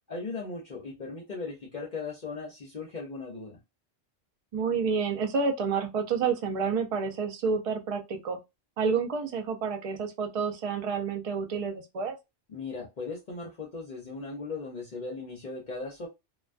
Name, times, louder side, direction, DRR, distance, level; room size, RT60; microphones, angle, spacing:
voice 1, 0.1-3.6 12.5-16.1, left 4 dB, 50° left, 0.7 m, -38 dB
voice 2, 4.5-8.4 8.8-12.2, right 5 dB, 60° right, 0.3 m, -29 dB
2.3 x 2.2 x 2.4 m
omnidirectional pair, 1.2 m